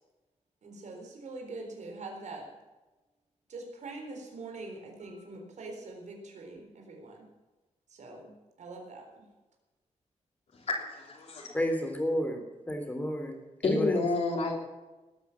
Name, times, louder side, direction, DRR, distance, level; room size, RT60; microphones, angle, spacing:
voice 1, 0.6-2.4 3.5-7.2 7.9-8.3 8.6-9.2, right 3 dB, 75° right, 2 dB, 4.0 m, -43 dB
voice 2, 10.5-11.5 13.6-14.6, left 3 dB, 60° left, -2 dB, 3.4 m, -29 dB
voice 3, 11.5-14.0, equal, 15° left, 3 dB, 3.4 m, -32 dB
19.5 x 9.2 x 7.1 m, 1.1 s
wide cardioid pair, 135°, 12 cm